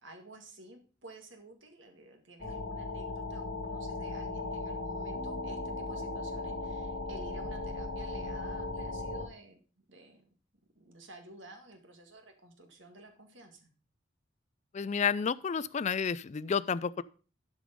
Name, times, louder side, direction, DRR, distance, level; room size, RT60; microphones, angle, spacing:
voice 1, 0.0-9.6 9.9-10.3 10.8-13.7, right 2 dB, 70° right, 4 dB, 2.0 m, -52 dB
sound 1, 2.4-9.3, left 2 dB, 70° left, 2.4 m, -37 dB
voice 2, 14.7-17.0, left 6 dB, 35° left, 15 dB, 0.4 m, -30 dB
12.0 x 5.1 x 5.2 m, 0.38 s
head